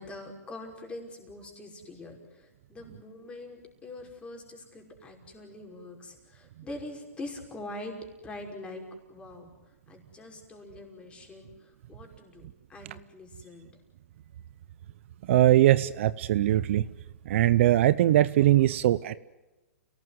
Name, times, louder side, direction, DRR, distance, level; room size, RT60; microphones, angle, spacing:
voice 1, 0.0-7.9 8.2-8.8 9.1-9.5 9.9-13.8, left 2 dB, 15° left, 3 dB, 5.5 m, -44 dB
voice 2, 15.3-16.8 17.3-19.2, right 14 dB, 55° right, 17 dB, 0.8 m, -21 dB
29.5 x 18.0 x 9.5 m, 1.1 s
hypercardioid pair, 145°, 8 cm